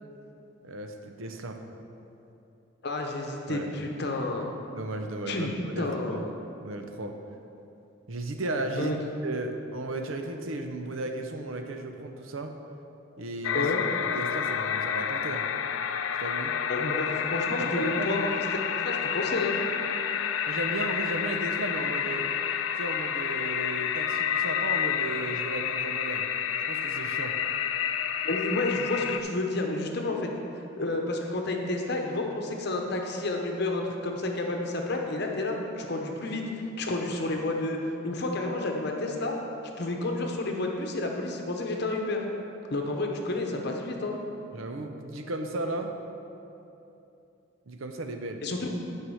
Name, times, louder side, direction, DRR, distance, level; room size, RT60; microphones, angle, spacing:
voice 1, 0.6-1.6 3.5-3.7 4.7-6.2 6.6-7.2 8.1-8.9 9.2-12.5 13.2-13.7 14.0-15.5 16.2-16.5 17.6-18.2 20.5-22.3 22.8-26.2 26.7-27.4 44.5-46.0 47.7-48.4, right 2 dB, 80° right, 5 dB, 0.7 m, -35 dB
voice 2, 2.8-4.5 5.3-6.3 8.8-9.0 13.5-13.8 16.7-18.3 18.8-19.6 28.2-30.3 30.8-36.4 36.8-37.8 38.0-39.4 39.8-42.2 42.7-44.2 48.4-48.7, left 2 dB, 55° left, 2 dB, 0.9 m, -30 dB
sound 1, 13.4-29.2, left 8 dB, 75° left, 0.4 m, -29 dB
9.5 x 4.7 x 6.3 m, 2.8 s
head